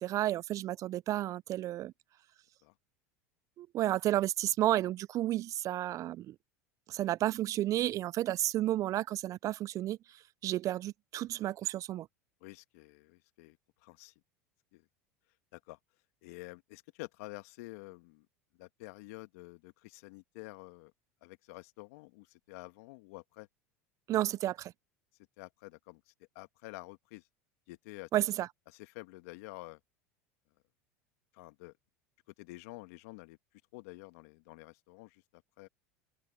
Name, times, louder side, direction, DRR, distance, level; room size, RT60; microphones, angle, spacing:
voice 1, 0.0-1.9 3.6-6.4 6.9-12.1 24.1-24.7 28.1-28.5, right 14 dB, 40° right, 0.4 m, -32 dB
voice 2, 12.4-14.1 14.7-14.9 15.5-15.8 16.2-18.3 18.6-20.9 21.2-23.5 25.4-27.2 27.7-28.1 28.7-29.8 31.3-31.7 32.4-33.4 33.7-35.7, left 23 dB, 70° left, 1.7 m, -49 dB
open air
hypercardioid pair, 90°, 8 cm